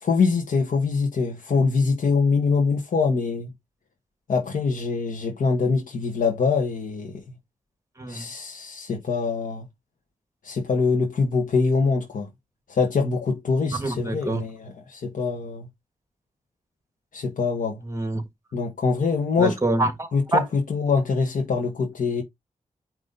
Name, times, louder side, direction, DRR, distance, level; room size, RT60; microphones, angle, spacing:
voice 1, 0.0-3.5 4.3-7.1 8.1-9.6 10.4-12.3 12.7-15.7 17.1-17.8 18.5-19.6 20.1-22.2, left 4 dB, 90° left, 1.4 m, -24 dB
voice 2, 8.0-8.3 13.8-14.4 17.8-18.2 19.4-20.5, right 2 dB, 25° right, 1.7 m, -26 dB
9.2 x 3.1 x 4.0 m
wide cardioid pair, 105°, 13 cm